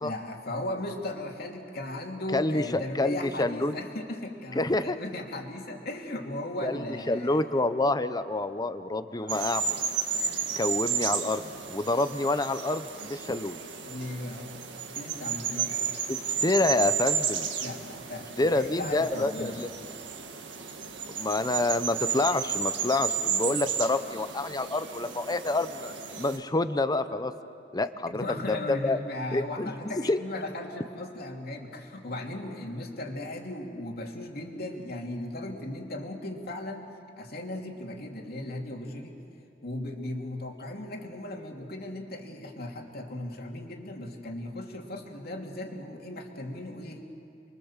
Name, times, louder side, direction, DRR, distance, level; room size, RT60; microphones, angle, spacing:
voice 1, 0.0-7.5 9.1-9.5 13.8-14.5 14.9-15.9 17.6-19.6 28.2-36.9 37.2-39.2 39.6-47.0, left 1 dB, 55° left, 1 dB, 2.9 m, -37 dB
voice 2, 2.3-3.7 4.5-5.0 6.6-9.8 10.6-13.6 16.1-17.5 18.4-19.7 21.1-27.3 27.7-29.0 29.3-29.7 30.0-30.2, left 2 dB, 20° left, 11 dB, 0.8 m, -28 dB
sound 1, 9.3-26.4, right 7 dB, 70° right, 1.9 m, -33 dB
29.5 x 23.0 x 7.4 m, 2.6 s
head